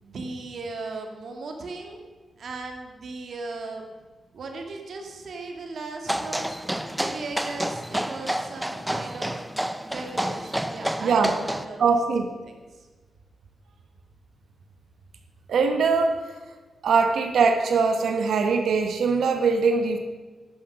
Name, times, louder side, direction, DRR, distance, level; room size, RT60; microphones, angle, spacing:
voice 1, 0.0-2.0 2.4-3.9 4.3-6.5 6.9-9.4 9.8-12.0 12.4-12.9, right 3 dB, 65° right, 3 dB, 2.2 m, -37 dB
sound 1, 6.1-11.7, right 1 dB, 5° right, 0.7 m, -29 dB
voice 2, 11.0-11.3 11.8-12.3 15.5-16.2 16.8-20.0, right 5 dB, 85° right, 5 dB, 1.3 m, -22 dB
11.5 x 10.5 x 6.3 m, 1.3 s
wide cardioid pair, 120°, 0 cm